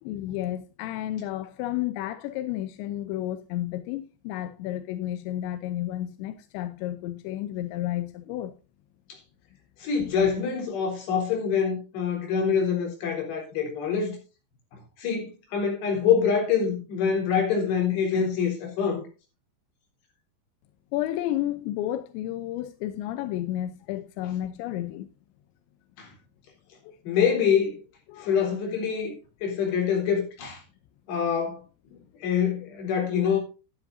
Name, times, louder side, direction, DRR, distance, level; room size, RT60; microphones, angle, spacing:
voice 1, 0.0-8.5 20.9-25.1 26.8-27.0 28.1-28.4, left 13 dB, 80° left, 2.8 m, -32 dB
voice 2, 9.8-14.2 15.0-19.0 26.0-26.1 27.0-27.8 28.2-30.6 31.1-31.6 32.2-33.4, left 7 dB, 60° left, 5.5 m, -25 dB
12.5 x 11.0 x 2.6 m
omnidirectional pair, 5.5 m